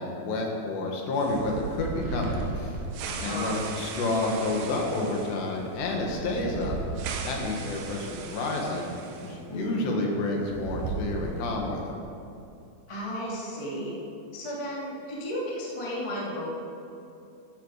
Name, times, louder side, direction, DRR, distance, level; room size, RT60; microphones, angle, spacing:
voice 1, 0.0-2.8 3.2-6.8 7.3-8.9 9.2-12.0, left 2 dB, 70° left, 0 dB, 3.4 m, -29 dB
sound 1, 1.2-9.4 9.6-9.7 10.4-11.7, right 4 dB, 75° right, 3.1 m, -36 dB
voice 2, 3.1-3.6 9.3-9.9 12.9-13.9 14.3-16.4, equal, 25° left, -5 dB, 0.6 m, -34 dB
13.5 x 10.5 x 4.9 m, 2.7 s
omnidirectional pair, 5.4 m